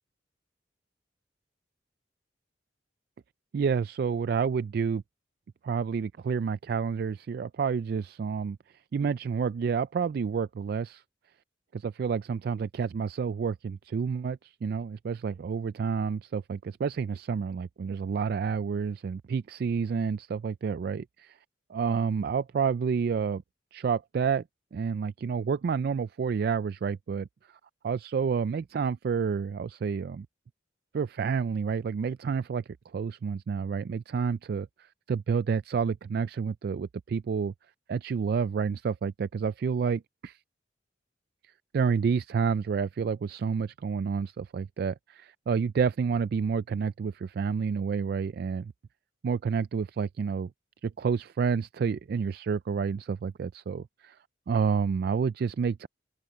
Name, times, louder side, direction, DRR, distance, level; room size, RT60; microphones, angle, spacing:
voice 1, 3.5-5.0 5.6-8.6 8.9-11.0 11.7-21.4 21.7-23.4 23.7-24.4 24.7-27.3 27.8-30.3 30.9-32.6 32.9-34.7 35.1-37.5 37.9-40.4 41.7-48.7 49.2-50.5 50.8-54.2 54.5-55.9, right 6 dB, 55° right, 0.3 m, -29 dB
open air
head